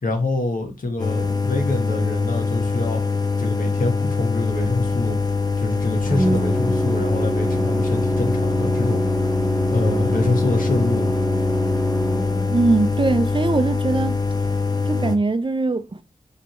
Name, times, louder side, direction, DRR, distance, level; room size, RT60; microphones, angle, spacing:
voice 1, 0.0-3.0 3.4-5.2 5.6-9.0 9.7-11.1, left 2 dB, 65° left, 1.4 m, -25 dB
sound 1, 1.0-15.2, left 4 dB, 25° left, 0.8 m, -23 dB
Organ, 4.5-14.6, right 1 dB, ahead, 0.7 m, -27 dB
voice 2, 12.5-14.2 14.9-16.0, right 3 dB, 35° right, 0.6 m, -21 dB
5.2 x 3.3 x 3.0 m
cardioid pair, 40°, 15 cm